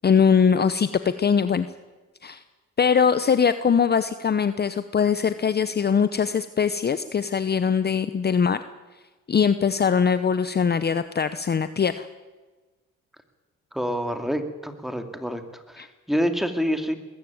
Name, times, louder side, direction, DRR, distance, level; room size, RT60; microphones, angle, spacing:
voice 1, 0.0-1.7 2.2-2.4 2.8-8.6 9.3-12.1 15.8-15.9, left 6 dB, 35° left, 12 dB, 0.8 m, -21 dB
voice 2, 13.7-17.0, equal, ahead, 7 dB, 2.5 m, -27 dB
20.5 x 14.5 x 9.4 m, 1.3 s
cardioid pair, 90°, 30 cm